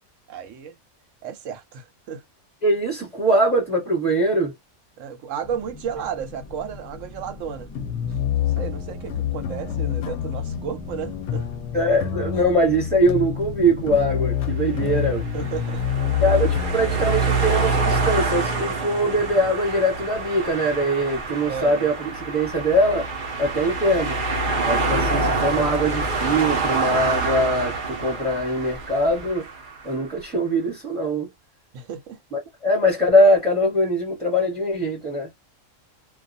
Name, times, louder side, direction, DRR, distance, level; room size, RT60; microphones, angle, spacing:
voice 1, 0.3-0.7 1.2-2.2 5.0-7.7 8.4-11.5 14.7-14.8 15.3-15.8 21.5-21.8 31.7-32.2, right 7 dB, 75° right, 1.0 m, -33 dB
voice 2, 2.6-4.5 11.7-15.2 16.2-23.1 23.4-24.2 24.6-29.5 29.8-31.3 32.3-35.3, equal, 5° left, 1.0 m, -22 dB
sound 1, 5.4-14.3, left 4 dB, 35° left, 0.8 m, -39 dB
sound 2, 7.8-20.6, left 10 dB, 70° left, 0.8 m, -28 dB
sound 3, 14.5-29.9, right 3 dB, 50° right, 0.7 m, -26 dB
2.3 x 2.3 x 2.6 m
omnidirectional pair, 1.3 m